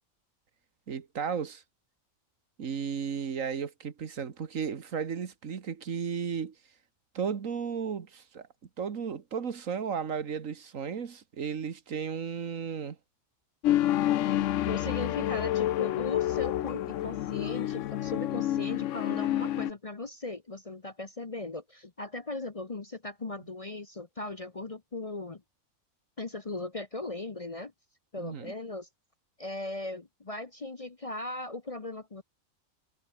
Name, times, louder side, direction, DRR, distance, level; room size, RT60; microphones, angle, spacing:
voice 1, 0.9-1.6 2.6-6.5 7.2-8.5 8.8-13.0 28.2-28.5, right 6 dB, 70° right, 1.8 m, -34 dB
sound 1, 13.6-19.7, left 13 dB, 70° left, 0.9 m, -28 dB
voice 2, 14.6-25.4 26.2-27.7 28.1-28.9 29.4-32.2, left 2 dB, 30° left, 0.9 m, -38 dB
omnidirectional pair, 1.4 m